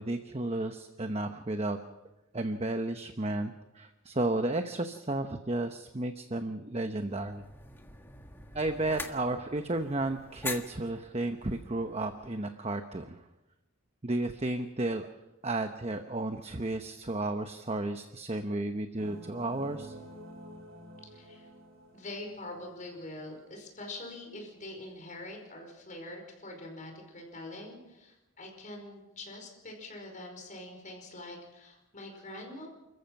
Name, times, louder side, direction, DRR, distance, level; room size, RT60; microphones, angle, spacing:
voice 1, 0.0-1.8 2.3-7.4 8.5-13.2 14.0-15.1 15.4-20.0, right 2 dB, 30° right, 7 dB, 0.9 m, -33 dB
sound 1, 7.1-12.5, left 3 dB, 10° left, 1.5 m, -44 dB
sound 2, 19.0-22.9, equal, 75° right, 3.3 m, -49 dB
voice 2, 21.1-21.5 21.9-32.7, left 1 dB, 40° left, 1 dB, 5.2 m, -44 dB
29.5 x 14.5 x 6.0 m, 1.0 s
head